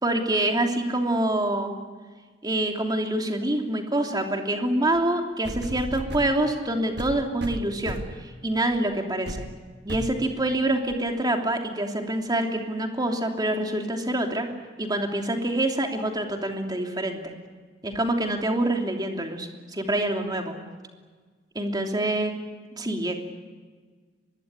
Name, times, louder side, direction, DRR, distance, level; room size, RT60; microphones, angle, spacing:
voice 1, 0.0-1.7 2.4-9.5 9.8-14.5 14.8-17.2 17.8-20.6 21.5-22.4 22.8-23.2, right 1 dB, 20° right, 3 dB, 3.1 m, -26 dB
sound 1, 4.9-5.0 5.4-6.3 7.0-8.2 8.7-8.9 9.3-9.5 9.9-10.2 10.9-11.0, right 1 dB, 65° right, 1.5 m, -34 dB
23.5 x 21.0 x 10.0 m, 1.5 s
head